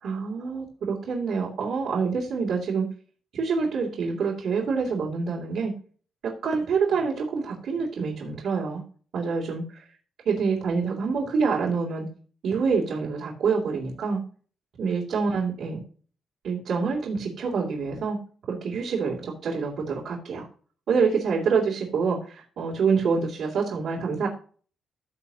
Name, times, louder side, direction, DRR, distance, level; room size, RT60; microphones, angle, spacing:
voice 1, 0.0-2.9 3.3-5.7 6.2-8.8 9.1-9.8 10.2-12.1 12.4-14.2 14.8-15.8 16.4-18.2 18.5-20.5 20.9-24.3, right 5 dB, 65° right, -4 dB, 2.8 m, -26 dB
15.0 x 6.9 x 2.9 m, 0.42 s
cardioid pair, 140°, 0 cm